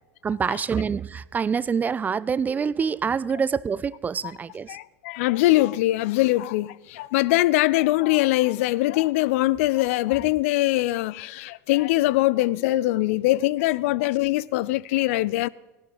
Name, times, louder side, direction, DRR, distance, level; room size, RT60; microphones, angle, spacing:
voice 1, 0.2-4.8, right 6 dB, 20° right, 0.3 m, -26 dB
voice 2, 4.7-15.5, left 17 dB, 60° left, 0.4 m, -22 dB
17.0 x 11.5 x 4.0 m
hypercardioid pair, 85°, 8 cm